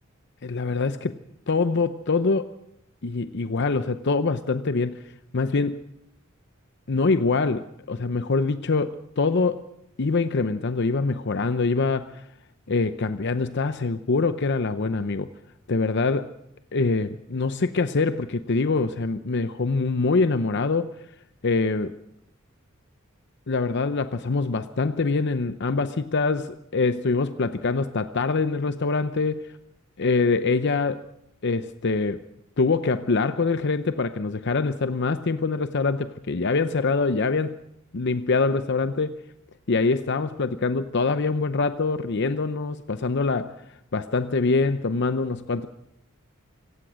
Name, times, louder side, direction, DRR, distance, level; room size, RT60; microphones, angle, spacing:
voice 1, 0.4-1.2 1.5-2.5 3.0-5.0 5.3-5.8 6.9-9.7 10.0-12.3 12.7-15.3 15.7-16.3 16.7-20.9 21.4-21.9 23.5-29.5 30.0-31.1 31.4-32.2 32.6-37.6 37.9-39.2 39.7-45.7, left 3 dB, 55° left, 11 dB, 0.7 m, -24 dB
26.0 x 16.0 x 6.3 m, 0.78 s
head